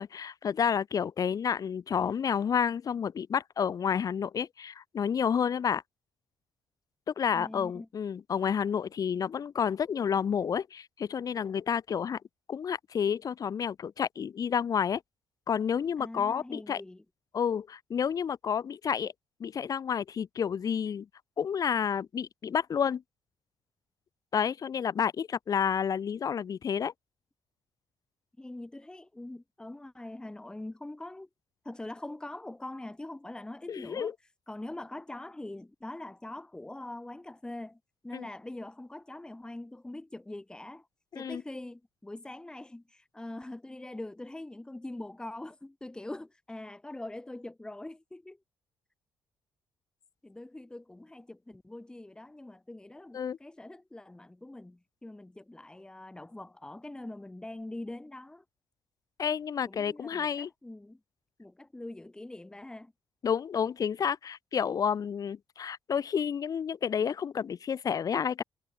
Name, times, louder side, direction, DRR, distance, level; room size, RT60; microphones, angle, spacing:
voice 1, 0.0-5.8 7.1-12.2 12.5-15.0 15.5-16.8 17.3-19.1 19.4-21.1 21.4-23.0 24.3-26.9 33.7-34.1 38.1-38.3 41.1-41.4 53.1-53.4 59.2-60.5 63.2-68.4, left 7 dB, 50° left, 3.3 m, -30 dB
voice 2, 7.3-7.9 16.0-17.0 28.4-31.3 31.6-34.1 34.5-40.8 41.1-48.4 50.2-58.4 59.7-61.0 61.4-62.9, left 1 dB, 10° left, 3.3 m, -43 dB
cardioid pair, 115°, 8 cm